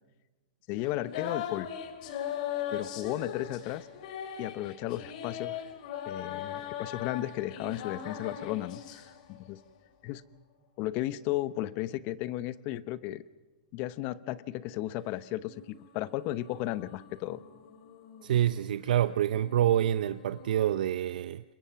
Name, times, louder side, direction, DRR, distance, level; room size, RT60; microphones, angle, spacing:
voice 1, 0.7-1.7 2.7-3.9 4.4-5.6 6.0-9.6 10.0-10.2 10.8-13.2 13.7-17.4, left 15 dB, 40° left, 0.9 m, -34 dB
sound 1, 0.8-9.6 15.4-20.7, left 9 dB, 60° left, 2.8 m, -40 dB
voice 2, 18.2-21.4, right 11 dB, 75° right, 0.6 m, -27 dB
28.0 x 22.5 x 5.9 m
hypercardioid pair, 140°, 5 cm